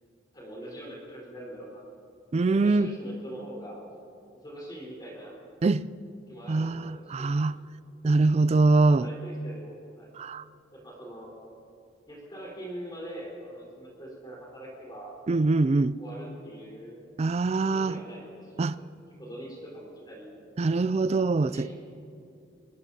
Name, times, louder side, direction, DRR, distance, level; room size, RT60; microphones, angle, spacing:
voice 1, 0.3-1.8 2.5-3.8 4.3-5.3 6.3-7.4 8.7-10.1 10.7-11.3 12.1-15.1 16.0-17.0 17.6-18.9 19.2-20.4 21.4-21.7, right 1 dB, 20° left, 4.3 m, -43 dB
voice 2, 2.3-2.9 5.6-5.9 6.5-7.5 8.0-9.1 10.2-10.4 15.3-16.0 17.2-18.0 18.6-18.7 20.6-21.7, right 3 dB, 35° right, 0.3 m, -23 dB
24.5 x 19.5 x 2.8 m
head